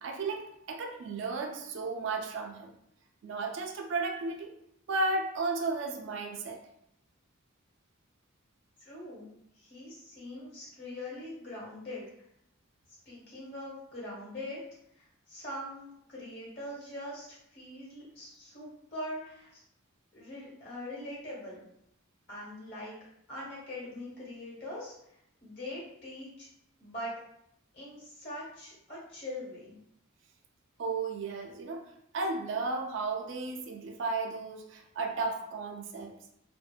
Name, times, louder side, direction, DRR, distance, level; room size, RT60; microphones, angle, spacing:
voice 1, 0.0-2.7 3.2-4.5 4.9-6.6 30.8-31.8 32.1-36.1, right 3 dB, 65° right, 3 dB, 0.3 m, -34 dB
voice 2, 8.8-9.3 9.5-12.1 13.0-14.6 15.0-19.6 20.1-21.6 22.3-23.0 23.3-24.9 25.4-26.5 26.8-27.1 27.7-29.8, left 1 dB, 55° left, -7 dB, 1.2 m, -42 dB
2.6 x 2.1 x 2.3 m, 0.76 s
head